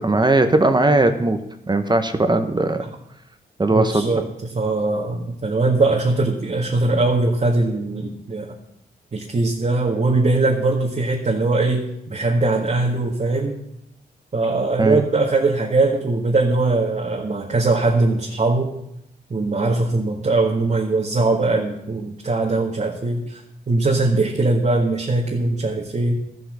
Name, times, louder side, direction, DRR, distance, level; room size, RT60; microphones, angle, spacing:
voice 1, 0.0-2.8 3.6-4.1 14.8-15.0, right 2 dB, 25° right, 8 dB, 1.2 m, -18 dB
voice 2, 3.7-4.2 4.5-8.6 9.1-13.6 14.3-18.7 19.3-26.2, right 2 dB, 45° right, -1 dB, 1.9 m, -21 dB
13.0 x 8.4 x 6.4 m, 0.78 s
cardioid pair, 70°, 17 cm